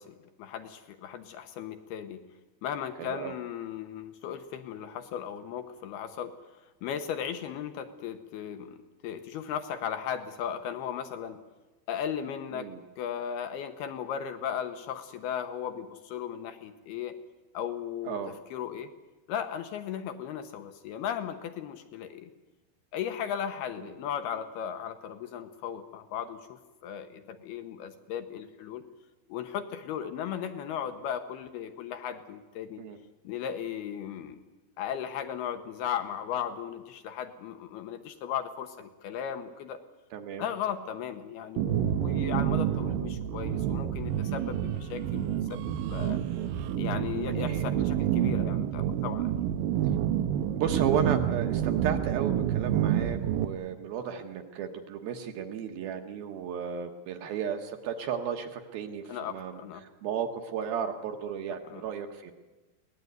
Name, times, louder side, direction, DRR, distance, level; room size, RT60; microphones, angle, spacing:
voice 1, 0.0-2.2 2.6-6.3 6.8-11.4 11.9-12.7 13.0-17.1 17.5-18.9 19.3-22.3 22.9-28.8 29.3-32.8 33.2-34.4 34.8-39.8 40.4-46.2 46.8-49.3 59.1-59.8 61.7-61.9, left 9 dB, 70° left, 8 dB, 2.7 m, -36 dB
voice 2, 3.0-3.4 12.5-12.8 18.0-18.3 23.8-23.9 32.8-33.0 40.1-40.5 42.7-42.8 47.4-47.7 50.5-62.3, right 7 dB, 65° right, 6 dB, 2.7 m, -34 dB
sound 1, 41.6-53.4, right 10 dB, 85° right, 2.0 m, -28 dB
23.0 x 19.0 x 9.5 m, 1.2 s
omnidirectional pair, 5.3 m